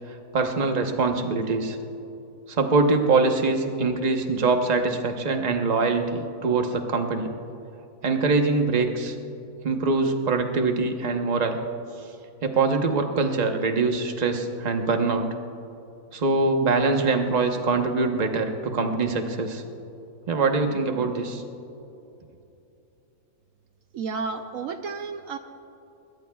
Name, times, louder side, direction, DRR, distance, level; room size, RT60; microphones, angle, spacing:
voice 1, 0.3-1.8 2.5-7.3 8.0-9.1 9.6-11.6 12.4-15.3 16.1-19.6 20.3-21.4, right 3 dB, 30° right, 4 dB, 1.0 m, -23 dB
voice 2, 23.9-25.4, right 4 dB, 70° right, 7 dB, 1.0 m, -32 dB
22.0 x 21.0 x 2.3 m, 2.8 s
omnidirectional pair, 1.5 m